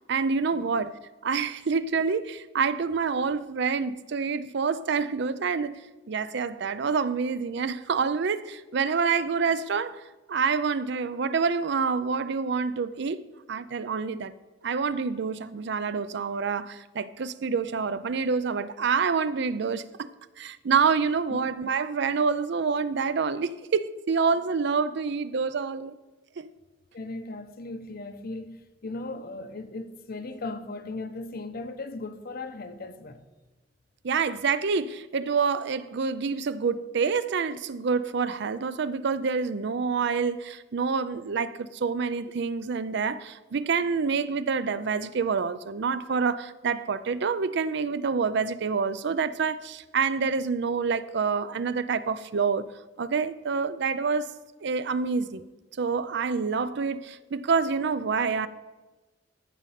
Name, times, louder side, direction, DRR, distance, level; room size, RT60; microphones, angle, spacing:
voice 1, 0.1-1.0 1.2-5.8 6.1-10.0 10.3-14.3 14.6-25.9 26.4-26.5 34.0-52.7 53.0-54.3 54.6-55.4 55.8-58.5, right 5 dB, 65° right, 0.5 m, -27 dB
voice 2, 26.9-33.2, left 2 dB, 55° left, 0.7 m, -37 dB
14.0 x 5.3 x 5.8 m
head